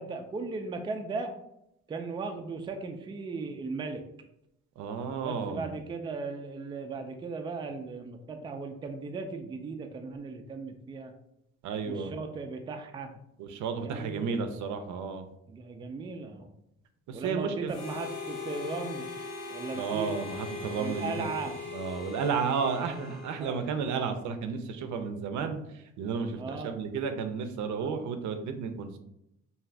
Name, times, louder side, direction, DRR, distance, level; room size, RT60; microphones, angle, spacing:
voice 1, 0.0-1.3 1.9-4.0 5.2-11.1 11.9-13.1 13.8-14.5 15.5-16.6 17.1-19.1 19.5-20.1 20.8-21.6 22.9-23.0 23.4-23.6 26.3-26.8, right 4 dB, 15° right, 5 dB, 0.3 m, -37 dB
voice 2, 4.8-5.7 11.6-12.1 13.4-15.2 17.1-17.7 19.7-21.1 21.7-25.6 26.0-29.0, right 5 dB, 70° right, 7 dB, 0.5 m, -32 dB
Harmonica, 17.7-24.1, left 4 dB, 60° left, 0.8 m, -40 dB
2.6 x 2.4 x 3.2 m, 0.81 s
cardioid pair, 90°, 30 cm